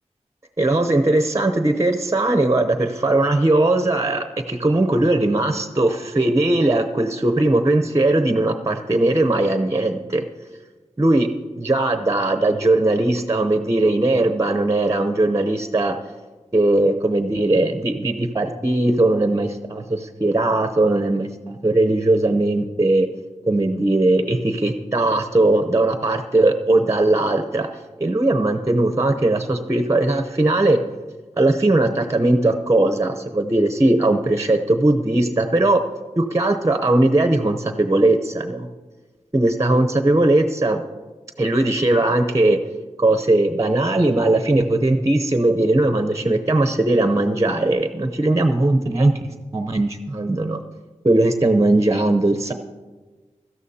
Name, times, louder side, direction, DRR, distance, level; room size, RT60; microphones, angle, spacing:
voice 1, 0.6-10.2 11.0-11.3 11.6-15.9 16.5-23.1 23.5-27.7 28.0-30.8 31.4-35.8 36.2-38.7 39.3-40.8 41.4-42.6 43.0-49.1 49.5-50.6 51.0-52.5, right 2 dB, 25° right, 7 dB, 0.8 m, -19 dB
16.5 x 12.5 x 2.8 m, 1.3 s
cardioid pair, 45°, 12 cm